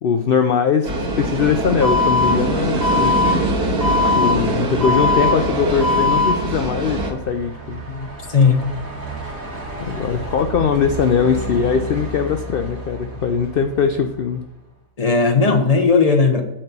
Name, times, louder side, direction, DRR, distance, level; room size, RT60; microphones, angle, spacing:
voice 1, 0.0-3.1 4.1-8.1 9.8-14.4, left 6 dB, 65° left, 7 dB, 0.5 m, -21 dB
sound 1, 0.8-7.1, right 2 dB, 85° right, 2.2 m, -23 dB
Alarm, 1.8-2.3 2.8-3.3 3.8-4.3 4.8-5.3 5.8-6.3, left 4 dB, ahead, 3.4 m, -18 dB
Truck, 6.1-14.7, right 1 dB, 65° right, 2.1 m, -33 dB
voice 2, 8.3-8.7 15.0-16.4, left 4 dB, 25° left, 4 dB, 1.0 m, -15 dB
10.0 x 4.4 x 6.7 m, 0.96 s
omnidirectional pair, 1.6 m